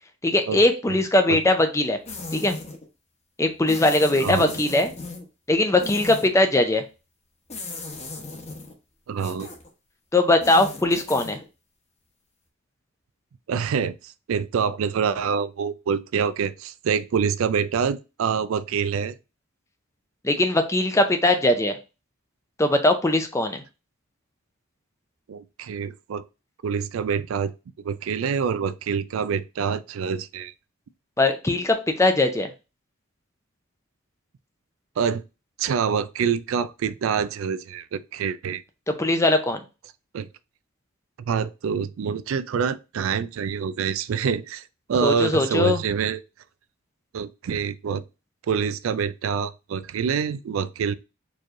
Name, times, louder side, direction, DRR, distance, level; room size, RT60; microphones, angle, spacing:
voice 1, 0.2-2.0 2.3-2.6 3.4-4.9 5.5-6.8 10.1-11.4 20.2-21.8 22.6-23.6 31.2-32.5 38.9-39.6 45.0-45.8, left 2 dB, 15° left, 0.5 m, -20 dB
sound 1, 2.0-2.8 3.7-5.2 5.8-6.3 7.5-8.7 9.2-9.7 10.3-11.4, left 3 dB, 30° left, 0.9 m, -37 dB
voice 2, 4.2-4.5 9.1-9.5 13.5-19.2 25.3-26.2 26.6-27.5 27.8-30.5 35.0-35.2 35.6-38.6 40.1-40.3 41.3-44.6 44.9-46.2 47.1-48.0 48.5-50.9, right 6 dB, 70° right, 0.3 m, -26 dB
4.6 x 3.1 x 2.5 m
head